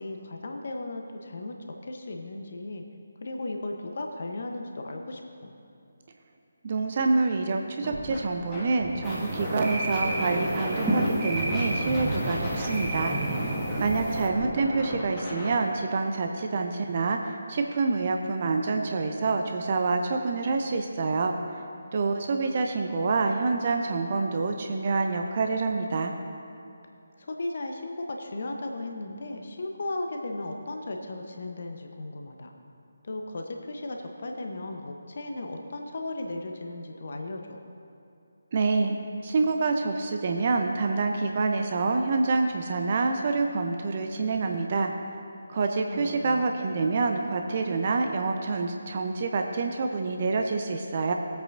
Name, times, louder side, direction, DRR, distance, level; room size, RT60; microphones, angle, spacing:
voice 1, 0.0-1.5 1.8-2.8 3.2-5.5 13.7-14.3 27.2-32.5 33.0-37.6 45.8-46.4, left 2 dB, 50° left, 3 dB, 0.9 m, -36 dB
voice 2, 6.6-21.3 21.9-26.1 38.5-38.9 39.2-44.9 45.5-51.1, right 3 dB, 40° right, 4 dB, 0.7 m, -27 dB
Scratching (performance technique), 7.8-8.2 8.5-11.1 11.4-15.5, left 1 dB, 10° left, 1.9 m, -36 dB
sound 1, 9.0-14.3, right 1 dB, 10° right, 1.2 m, -30 dB
20.0 x 8.1 x 2.6 m, 2.7 s
figure-of-eight pair, 150°, 0 cm